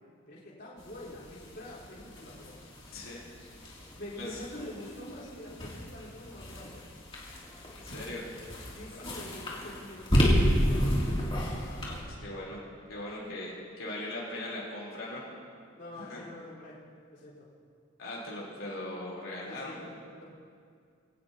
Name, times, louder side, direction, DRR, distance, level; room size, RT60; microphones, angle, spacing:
voice 1, 0.3-2.6 3.9-6.9 8.7-10.9 15.8-16.8 17.1-17.5 19.4-20.2, left 1 dB, 55° left, -9 dB, 4.4 m, -45 dB
sound 1, 0.8-12.0, equal, 25° left, 3.0 m, -32 dB
voice 2, 2.9-3.2 4.2-4.4 6.6-6.7 7.7-8.7 8.9-9.0 11.8-12.6 12.9-15.3 15.9-16.2 18.0-19.7, left 1 dB, 85° left, -6 dB, 3.9 m, -40 dB
22.5 x 17.5 x 3.0 m, 2.2 s
head